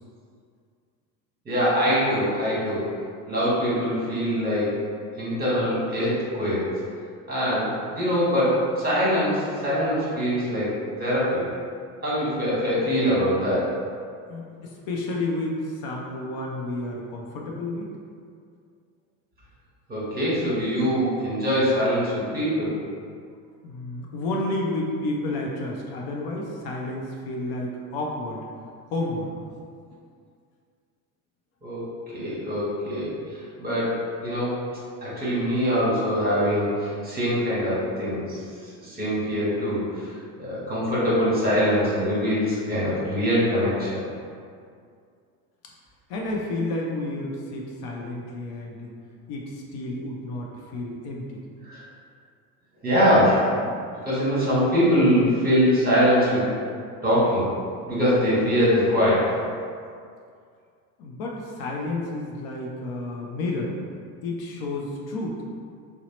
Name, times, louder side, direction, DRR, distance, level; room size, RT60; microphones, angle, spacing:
voice 1, 1.4-2.9 3.3-4.8 5.1-6.6 7.3-10.7 11.0-11.4 12.0-13.7 19.9-22.7 31.6-31.8 32.1-34.6 35.0-38.4 38.8-40.1 40.4-44.0 51.6-51.8 52.8-53.7 54.0-56.4 57.0-57.5 57.9-59.3, equal, 20° right, -8 dB, 1.3 m, -23 dB
voice 2, 14.3-17.9 23.6-28.4 28.9-29.3 46.1-48.9 49.3-51.4 61.0-63.7 64.2-65.4, left 2 dB, 50° left, -2 dB, 0.5 m, -31 dB
2.8 x 2.0 x 2.9 m, 2.2 s
hypercardioid pair, 85°, 48 cm